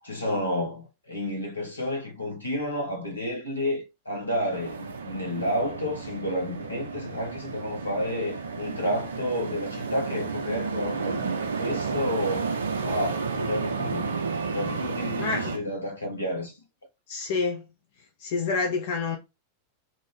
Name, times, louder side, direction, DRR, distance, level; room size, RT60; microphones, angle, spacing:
voice 1, 0.0-12.5 12.8-14.2 14.5-16.6, left 1 dB, 80° left, 1.0 m, -30 dB
sound 1, 4.5-15.6, right 5 dB, 70° right, 0.4 m, -32 dB
voice 2, 15.2-15.5 17.1-17.6 18.2-19.2, left 4 dB, 50° left, 0.5 m, -27 dB
2.6 x 2.5 x 3.2 m
figure-of-eight pair, 90°, 0 cm